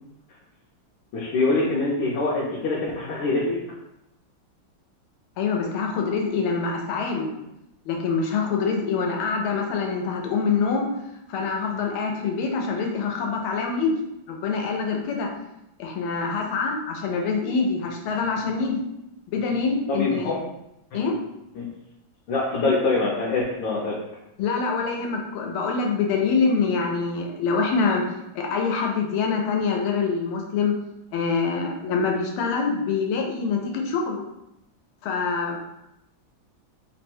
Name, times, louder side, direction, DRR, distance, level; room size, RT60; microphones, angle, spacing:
voice 1, 1.1-3.6 19.9-20.4 21.5-21.7 22.3-23.9, left 3 dB, 70° left, -4 dB, 1.3 m, -24 dB
voice 2, 5.4-7.3 7.9-10.9 11.3-13.9 14.3-15.3 15.8-18.8 19.3-20.4 20.9-21.1 24.4-28.0 28.3-30.7 31.1-34.2 35.0-35.6, left 5 dB, 90° left, 2 dB, 1.5 m, -25 dB
3.7 x 2.1 x 4.3 m, 0.85 s
omnidirectional pair, 2.3 m